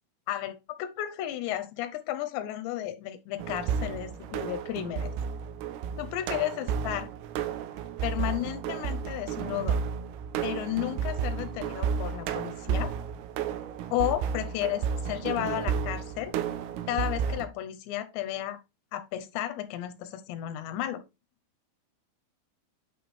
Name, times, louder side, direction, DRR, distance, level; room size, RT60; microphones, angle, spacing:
voice 1, 0.3-5.1 6.0-7.1 8.0-9.8 10.4-12.9 13.9-16.4 16.9-18.6 18.9-21.0, left 13 dB, 80° left, 3.0 m, -33 dB
sound 1, 3.4-17.5, right 7 dB, 80° right, 2.3 m, -32 dB
8.8 x 3.8 x 4.2 m
omnidirectional pair, 5.3 m